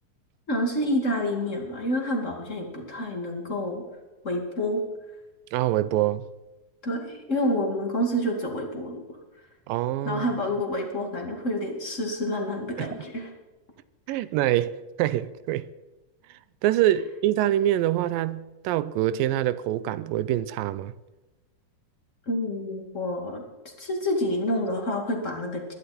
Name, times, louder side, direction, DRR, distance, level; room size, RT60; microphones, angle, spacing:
voice 1, 0.5-3.8 4.2-4.8 6.8-9.0 10.0-13.3 14.1-14.2 22.3-25.7, left 1 dB, 25° left, 2.3 m, -28 dB
voice 2, 5.5-6.2 9.7-10.3 12.8-12.9 14.1-15.7 16.6-20.9, right 13 dB, 85° right, 2.3 m, -25 dB
22.0 x 11.5 x 4.3 m
omnidirectional pair, 4.0 m